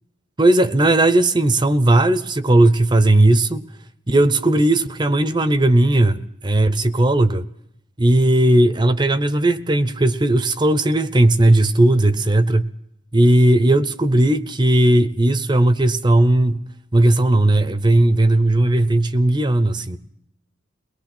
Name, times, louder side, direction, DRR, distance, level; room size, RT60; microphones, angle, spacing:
voice 1, 0.4-3.6 4.1-7.4 8.0-12.6 13.1-16.6 16.9-20.0, right 1 dB, 25° right, 0.7 m, -16 dB
22.5 x 19.5 x 5.9 m
head